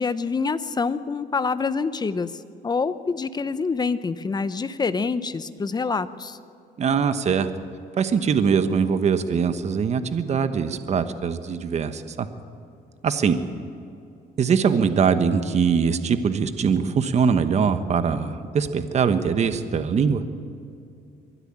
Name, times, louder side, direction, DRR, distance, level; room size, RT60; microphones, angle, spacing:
voice 1, 0.0-2.3 2.6-6.4, left 4 dB, 25° left, 13 dB, 0.9 m, -26 dB
voice 2, 6.8-7.5 8.0-12.3 13.0-13.4 14.4-20.2, right 6 dB, 40° right, 10 dB, 1.2 m, -22 dB
23.5 x 12.5 x 8.8 m, 2.5 s
cardioid pair, 110°, 17 cm